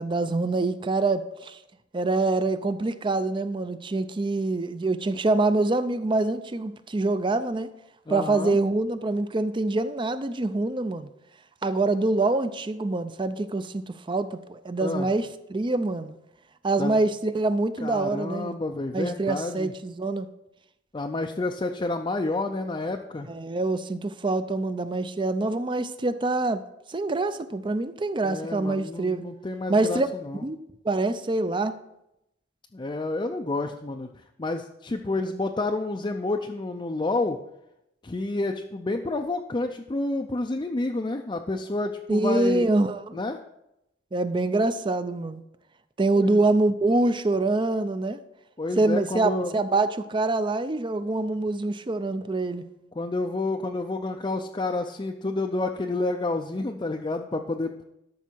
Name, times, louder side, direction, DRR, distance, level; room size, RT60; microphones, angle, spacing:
voice 1, 0.0-1.6 1.9-7.7 8.1-11.1 11.6-16.2 16.6-18.6 18.9-20.3 23.3-26.6 26.9-29.2 29.7-30.1 30.4-31.8 42.1-43.2 44.1-45.4 46.0-48.2 48.8-52.6, right 2 dB, 25° right, 0.5 m, -25 dB
voice 2, 8.1-8.6 14.8-15.1 16.8-17.0 17.8-19.7 20.9-23.3 28.2-30.4 32.7-34.1 34.4-37.4 38.0-42.7 43.1-43.4 46.2-46.4 48.6-49.5 53.0-57.7, left 2 dB, 25° left, 0.5 m, -29 dB
12.5 x 6.0 x 4.5 m
head